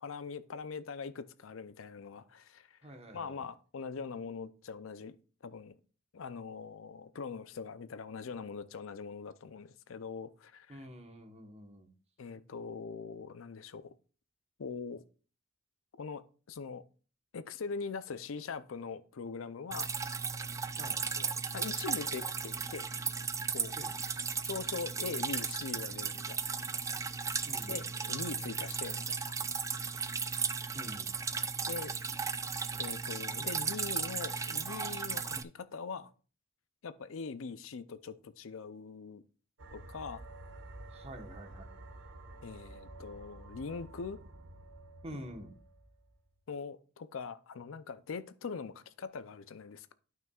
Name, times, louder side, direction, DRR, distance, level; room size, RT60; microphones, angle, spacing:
voice 1, 0.0-2.8 3.1-5.2 5.4-5.7 6.1-10.9 12.2-13.9 14.6-15.0 16.0-16.2 16.5-16.8 17.3-20.0 21.2-21.3 21.5-22.9 23.5-23.7 24.4-26.6 27.7-29.4 31.7-31.9 32.7-36.1 36.8-39.2 39.7-40.2 42.4-44.2 46.5-49.9, left 5 dB, 70° left, 0.5 m, -42 dB
voice 2, 2.8-3.4 10.7-11.9 20.8-21.0 23.8-23.9 27.5-27.8 30.7-31.1 40.9-41.7 45.0-45.5, equal, 30° right, 1.2 m, -47 dB
Drip, 19.7-35.4, right 5 dB, 15° right, 0.3 m, -36 dB
sound 1, 39.6-46.2, right 2 dB, 65° right, 1.0 m, -50 dB
12.0 x 5.7 x 2.4 m
head